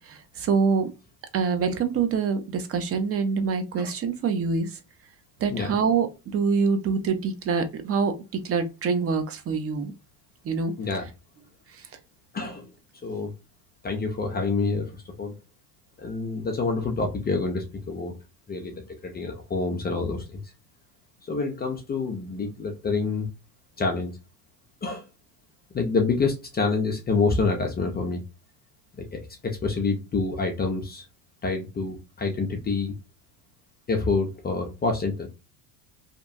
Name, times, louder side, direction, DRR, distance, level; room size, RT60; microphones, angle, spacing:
voice 1, 0.4-0.9 1.3-4.7 5.4-6.1 6.3-8.1 8.4-9.9 10.5-10.7, right 5 dB, 30° right, 8 dB, 0.6 m, -25 dB
voice 2, 10.8-11.1 12.3-12.7 13.0-13.3 13.8-15.3 16.0-18.2 18.5-20.4 21.3-23.3 23.8-24.2 24.8-25.1 25.7-28.2 29.0-31.0 31.4-32.9 33.9-35.3, left 4 dB, 20° left, 2 dB, 0.5 m, -27 dB
2.8 x 2.2 x 2.5 m, 0.27 s
hypercardioid pair, 90°, 48 cm